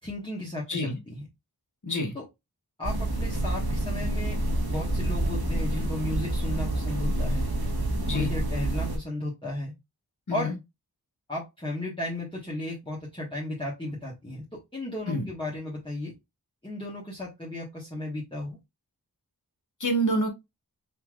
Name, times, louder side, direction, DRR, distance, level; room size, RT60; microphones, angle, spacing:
voice 1, 0.0-1.2 2.1-2.2 2.8-4.4 4.7-7.5 8.1-9.7 10.3-10.5 11.3-16.1 16.6-18.6, left 1 dB, 15° left, 1.6 m, -35 dB
voice 2, 1.8-2.1 8.0-8.3 10.3-10.5 15.1-15.3 19.8-20.3, equal, 50° left, 1.4 m, -27 dB
sound 1, 2.8-9.0, right 1 dB, 75° right, 1.2 m, -28 dB
5.7 x 3.1 x 2.5 m
wide cardioid pair, 50°, 38 cm